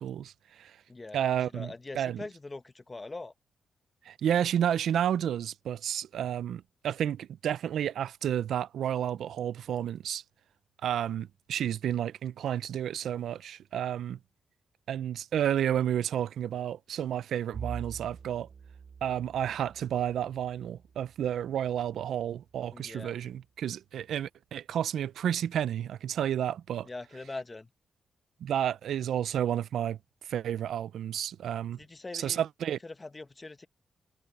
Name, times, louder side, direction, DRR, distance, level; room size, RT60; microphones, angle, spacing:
voice 1, 0.0-0.8 1.1-2.2 4.0-10.2 10.8-14.2 14.9-18.5 19.0-26.9 28.4-30.0 30.2-31.8 32.1-32.8, right 10 dB, 80° right, 0.4 m, -31 dB
voice 2, 0.9-1.2 1.5-3.3 22.7-23.1 26.8-27.7 31.8-32.4 32.8-33.7, left 3 dB, 25° left, 1.0 m, -42 dB
Bowed string instrument, 17.5-22.1, right 6 dB, 50° right, 6.6 m, -45 dB
cardioid pair, 90°, 0 cm